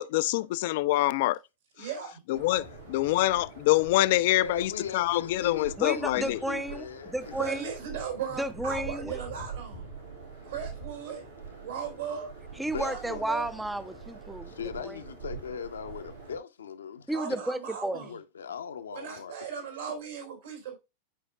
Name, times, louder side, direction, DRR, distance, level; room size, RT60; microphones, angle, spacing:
voice 1, 0.0-1.4 2.3-6.4, left 17 dB, 50° left, 0.4 m, -25 dB
voice 2, 1.8-2.2 7.4-9.9 10.4-11.2 11.6-12.3 12.8-13.4 17.1-18.1 18.9-20.8, right 7 dB, 70° right, 3.6 m, -37 dB
sound 1, 2.3-16.4, right 4 dB, 85° right, 3.6 m, -44 dB
voice 3, 4.4-7.5 12.7-13.2 14.5-17.4 17.9-19.4, left 7 dB, 70° left, 0.8 m, -39 dB
voice 4, 5.8-7.7 8.4-9.2 12.6-14.5 14.8-15.0 17.1-18.1, right 1 dB, 5° right, 0.5 m, -32 dB
11.0 x 4.9 x 2.3 m
figure-of-eight pair, 90°, 0 cm